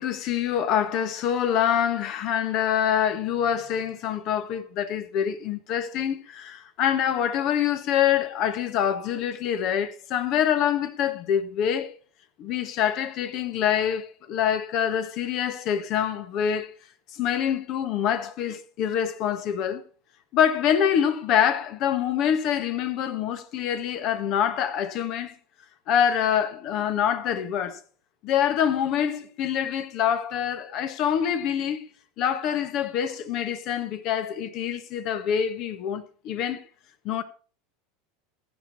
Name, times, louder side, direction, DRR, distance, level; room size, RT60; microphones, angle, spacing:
voice 1, 0.0-11.9 12.4-16.7 17.1-19.8 20.3-25.3 25.9-27.8 28.2-31.8 32.2-36.6 37.0-37.2, left 9 dB, 50° left, 1.6 m, -25 dB
15.5 x 6.6 x 5.6 m
supercardioid pair, 115°, 0 cm